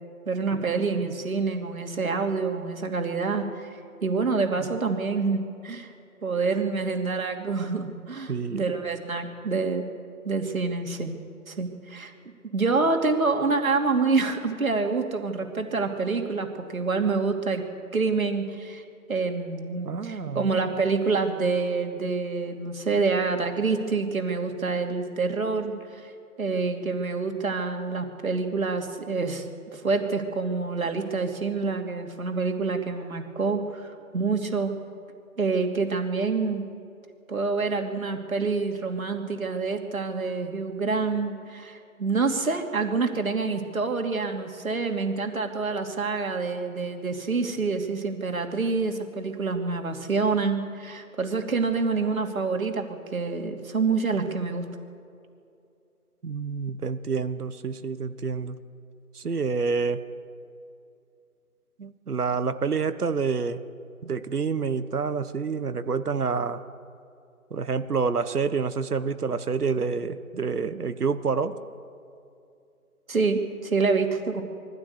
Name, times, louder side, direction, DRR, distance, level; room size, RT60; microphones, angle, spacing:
voice 1, 0.3-5.9 6.2-9.8 10.2-11.2 11.5-12.1 12.4-17.6 17.9-18.8 19.1-26.1 26.4-29.4 29.7-34.7 35.4-36.6 37.3-54.7 73.1-74.4, right 4 dB, 65° right, 4 dB, 2.7 m, -27 dB
voice 2, 8.3-8.6 19.8-20.5 56.2-58.6 59.1-60.0 61.8-63.6 64.0-66.6 67.5-71.6, right 5 dB, 80° right, 12 dB, 1.3 m, -28 dB
22.5 x 15.0 x 8.2 m, 2.5 s
hypercardioid pair, 175°, 45 cm